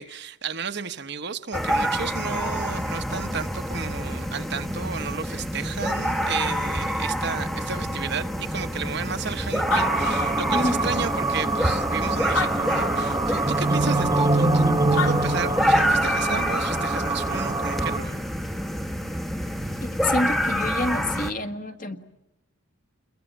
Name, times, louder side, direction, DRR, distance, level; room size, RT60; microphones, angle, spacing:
voice 1, 0.0-18.2, right 5 dB, 50° right, 9 dB, 1.2 m, -33 dB
sound 1, 1.5-21.3, equal, ahead, 1.1 m, -27 dB
Animal, 9.7-11.0 11.6-11.7 12.2-13.2 14.7-14.8 15.0-15.9, left 4 dB, 85° left, 3.2 m, -30 dB
sound 2, 9.7-18.0, right 2 dB, 15° right, 1.4 m, -25 dB
voice 2, 10.5-10.8 19.8-22.0, left 2 dB, 40° left, 7 dB, 1.6 m, -28 dB
29.5 x 22.5 x 9.0 m, 0.87 s
head